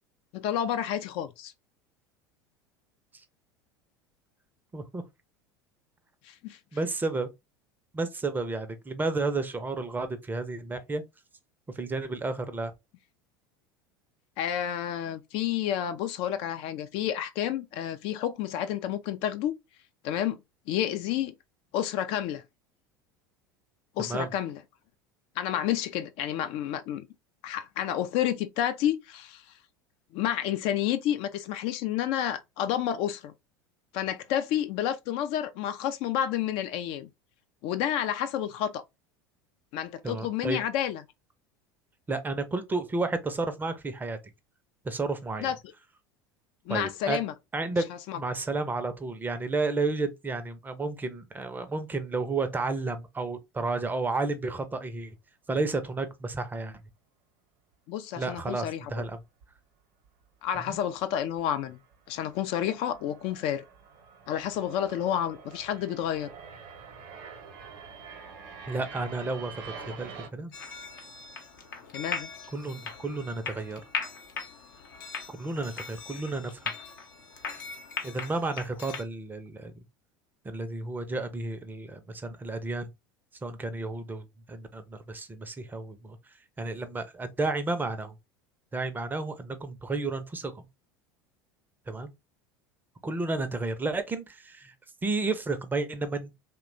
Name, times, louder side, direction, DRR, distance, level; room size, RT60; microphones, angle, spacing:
voice 1, 0.3-1.5 6.2-6.6 14.4-19.5 20.0-20.4 20.7-21.3 21.7-22.4 24.0-24.6 25.4-27.1 27.4-29.4 30.1-33.3 33.9-37.1 37.6-38.8 39.7-41.0 45.4-45.6 46.7-47.3 48.1-48.2 57.9-58.9 60.4-61.8 62.1-63.6 64.3-66.3 71.9-72.3, left 10 dB, 55° left, 0.4 m, -30 dB
voice 2, 6.7-7.3 7.9-11.0 11.8-12.7 24.0-24.3 40.0-40.6 42.1-44.2 44.8-45.5 46.7-47.2 47.5-47.9 48.2-55.1 55.5-56.8 58.2-59.2 60.6-60.8 68.7-70.5 72.5-73.8 75.3-76.7 78.0-79.7 80.4-82.9 83.4-86.2 86.6-88.1 88.7-90.7 91.9-92.1 93.0-94.7 95.0-96.3, right 3 dB, 15° right, 0.5 m, -32 dB
sound 1, 58.9-59.1 59.4-59.5 60.2-60.3 60.5-60.8 61.2-70.3, right 6 dB, 55° right, 0.8 m, -47 dB
sound 2, 70.5-79.0, left 5 dB, 80° left, 0.8 m, -39 dB
2.8 x 2.2 x 2.5 m
hypercardioid pair, 80°, 11 cm